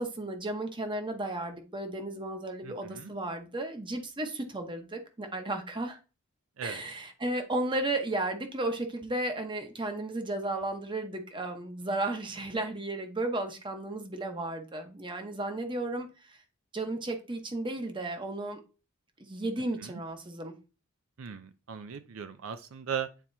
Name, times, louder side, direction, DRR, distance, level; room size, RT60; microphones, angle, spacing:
voice 1, 0.0-6.0 6.6-16.4 16.7-18.6 19.2-20.5, right 2 dB, 25° right, 1.0 m, -34 dB
voice 2, 2.6-3.1 6.6-6.8 19.8-20.0 21.2-23.1, right 7 dB, 75° right, 0.5 m, -38 dB
9.1 x 4.3 x 2.7 m
head